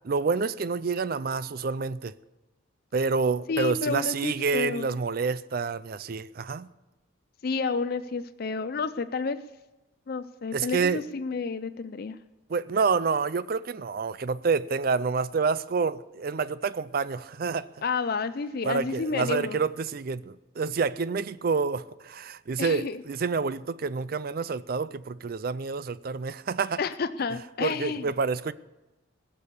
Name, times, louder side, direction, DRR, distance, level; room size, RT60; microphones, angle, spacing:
voice 1, 0.0-2.1 2.9-6.7 10.5-11.0 12.5-17.7 18.6-26.8 27.6-28.5, right 4 dB, 45° right, 0.4 m, -28 dB
voice 2, 3.5-5.0 7.4-9.4 10.1-12.2 17.8-19.6 22.6-23.0 26.8-28.1, left 4 dB, 45° left, 0.4 m, -30 dB
20.0 x 6.9 x 6.9 m
head